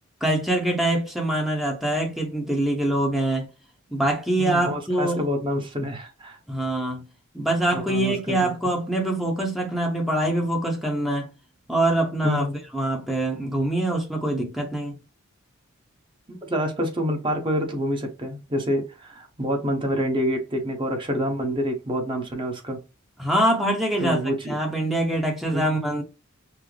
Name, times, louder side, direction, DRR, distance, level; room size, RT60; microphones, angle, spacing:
voice 1, 0.2-3.5 3.9-5.2 6.5-7.0 7.3-11.3 11.7-12.5 12.7-15.0 23.2-26.0, right 1 dB, ahead, 0.9 m, -24 dB
voice 2, 4.4-6.4 7.7-8.5 12.2-12.5 16.3-22.8 24.0-24.6 25.5-25.7, equal, 25° right, 1.1 m, -27 dB
6.0 x 2.1 x 3.3 m
head